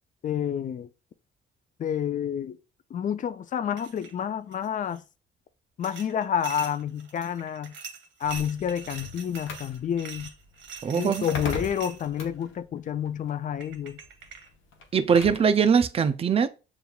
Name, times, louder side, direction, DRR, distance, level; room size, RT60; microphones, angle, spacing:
voice 1, 0.2-0.9 1.8-2.6 2.9-5.0 5.8-7.7 8.2-10.3 11.0-14.0, left 9 dB, 40° left, 0.4 m, -29 dB
sound 1, 3.8-4.2 4.5-5.0 5.8-12.2 13.2-13.3 13.6-14.5, right 5 dB, 65° right, 0.9 m, -43 dB
sound 2, 8.2-15.6, left 3 dB, 80° left, 0.9 m, -41 dB
voice 2, 10.8-11.2 14.9-16.5, right 6 dB, 30° right, 0.4 m, -21 dB
6.8 x 2.4 x 2.3 m
cardioid pair, 90°, 20 cm